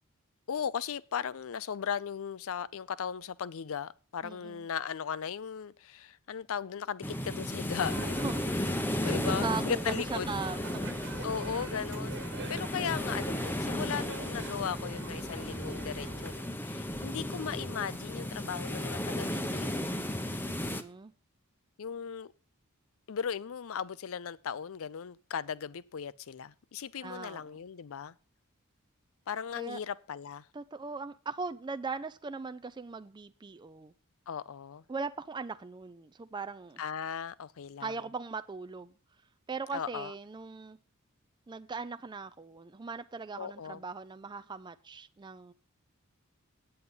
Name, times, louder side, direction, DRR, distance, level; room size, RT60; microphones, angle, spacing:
voice 1, 0.5-8.3 9.0-10.4 11.2-19.9 21.8-22.3 23.1-28.1 29.3-30.5 34.3-34.8 36.8-38.0 39.7-40.1 43.4-43.8, left 7 dB, 70° left, 0.5 m, -37 dB
voice 2, 4.2-4.7 8.2-8.5 9.0-10.6 11.5-11.7 20.4-21.1 27.0-27.6 29.5-29.8 30.5-33.9 34.9-36.8 37.8-38.9 39.5-40.8 41.5-45.5, right 4 dB, 20° right, 0.4 m, -39 dB
sound 1, 7.0-20.8, left 1 dB, 10° left, 0.7 m, -34 dB
sound 2, 7.8-16.4, right 3 dB, 55° right, 1.4 m, -45 dB
9.4 x 7.8 x 5.5 m
head